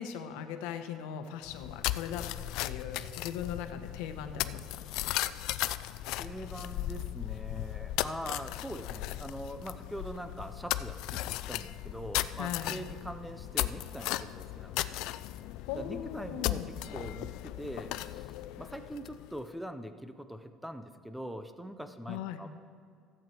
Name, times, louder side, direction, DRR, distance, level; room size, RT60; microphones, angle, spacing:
voice 1, 0.0-2.3 2.6-4.7 12.4-12.7 15.7-16.7 22.1-22.4, left 9 dB, 90° left, 8 dB, 0.9 m, -39 dB
sound 1, 1.5-19.4, left 15 dB, 65° left, 0.3 m, -36 dB
voice 2, 5.8-14.8 15.8-22.5, equal, ahead, 9 dB, 0.5 m, -43 dB
14.0 x 7.8 x 4.5 m, 2.3 s
cardioid pair, 160°, 0 cm